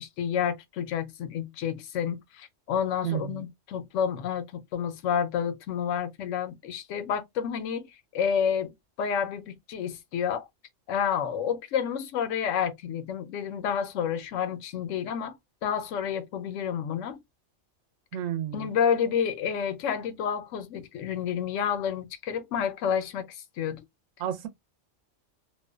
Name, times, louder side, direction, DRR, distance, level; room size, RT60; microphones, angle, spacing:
voice 1, 0.0-7.9 8.1-8.7 9.0-10.5 10.9-15.3 15.6-17.2 18.5-23.8, left 8 dB, 80° left, 0.9 m, -29 dB
voice 2, 3.0-3.4 18.1-18.7 24.2-24.5, right 11 dB, 90° right, 1.0 m, -31 dB
2.6 x 2.1 x 2.3 m
omnidirectional pair, 1.3 m